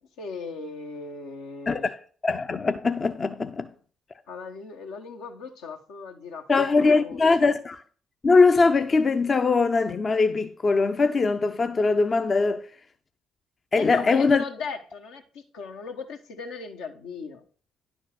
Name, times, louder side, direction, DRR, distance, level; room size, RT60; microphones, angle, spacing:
voice 1, 0.2-1.9 4.3-6.5 6.9-7.5 13.7-17.4, left 5 dB, 75° left, 1.2 m, -37 dB
voice 2, 1.7-2.0 2.2-3.7 6.5-7.8 8.2-12.7 13.7-14.4, left 4 dB, 35° left, 0.6 m, -21 dB
10.5 x 4.4 x 6.0 m
hypercardioid pair, 50°, 0 cm